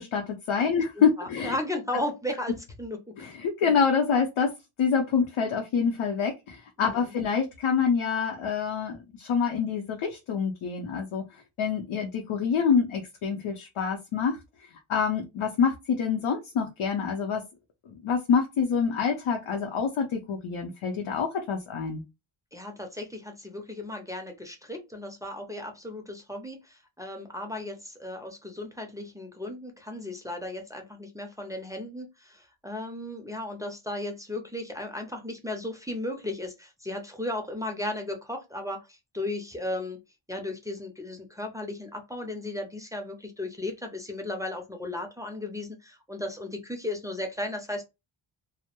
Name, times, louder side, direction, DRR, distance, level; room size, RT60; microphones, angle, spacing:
voice 1, 0.0-1.6 3.2-4.5 4.8-11.2 11.6-14.4 14.9-17.4 18.0-22.0, left 6 dB, 80° left, 3 dB, 0.6 m, -26 dB
voice 2, 0.6-3.0 6.8-7.1 22.5-40.0 40.3-47.8, left 1 dB, 10° right, 3 dB, 0.3 m, -35 dB
2.2 x 2.0 x 2.8 m, 0.24 s
wide cardioid pair, 150°, 48 cm